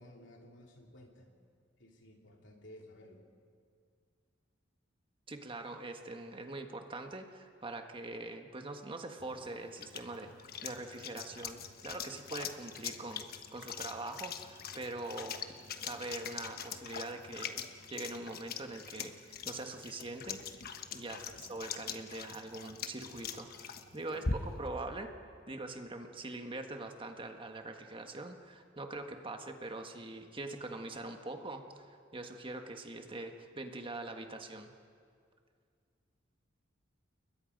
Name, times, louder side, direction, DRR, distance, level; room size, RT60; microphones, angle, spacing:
voice 1, 0.0-1.3 1.8-3.2 21.0-21.4 24.1-24.5, left 1 dB, 70° left, 1 dB, 3.2 m, -55 dB
voice 2, 5.3-15.5 15.8-17.6 17.9-20.4 20.9-25.1 25.5-34.7, right 2 dB, 25° right, 5 dB, 1.5 m, -43 dB
sound 1, 9.2-24.7, left 5 dB, 50° left, 1.2 m, -43 dB
29.5 x 22.5 x 5.3 m, 2.2 s
head